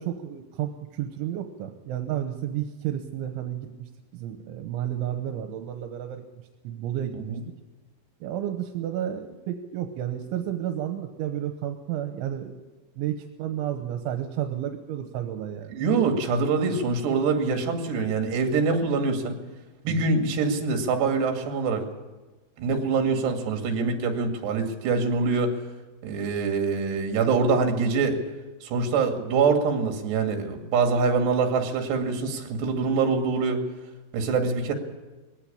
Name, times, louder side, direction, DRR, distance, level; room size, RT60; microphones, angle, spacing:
voice 1, 0.0-6.2 6.6-7.4 8.2-12.6 13.0-15.7 19.9-20.1, right 11 dB, 85° right, 6 dB, 3.5 m, -32 dB
voice 2, 15.7-19.4 19.8-21.8 22.6-25.6 26.0-28.2 28.6-33.6 34.1-34.7, right 4 dB, 65° right, 4 dB, 4.3 m, -24 dB
20.5 x 16.5 x 8.7 m, 1.2 s
omnidirectional pair, 5.4 m